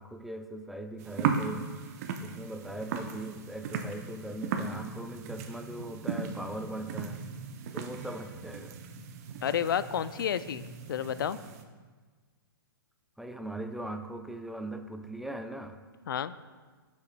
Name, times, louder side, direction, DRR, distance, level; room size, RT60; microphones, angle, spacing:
voice 1, 0.0-1.7 2.2-7.2 7.7-8.8 13.2-15.8, right 1 dB, ahead, 6 dB, 0.4 m, -40 dB
sound 1, 1.0-11.6, right 6 dB, 40° right, 0.7 m, -37 dB
voice 2, 9.4-11.4 16.1-16.3, left 9 dB, 65° left, 15 dB, 0.4 m, -31 dB
14.0 x 7.1 x 2.2 m, 1.4 s
figure-of-eight pair, 120°, 12 cm